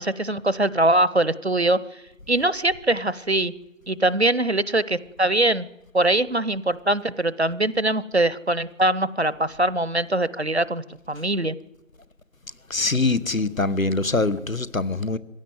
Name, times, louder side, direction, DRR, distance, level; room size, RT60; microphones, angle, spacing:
voice 1, 0.0-1.8 2.3-3.5 3.9-5.7 5.9-11.5, right 1 dB, 50° right, 0.8 m, -22 dB
voice 2, 12.7-15.2, left 3 dB, 75° left, 1.4 m, -23 dB
21.0 x 16.0 x 9.4 m
figure-of-eight pair, 170°, 41 cm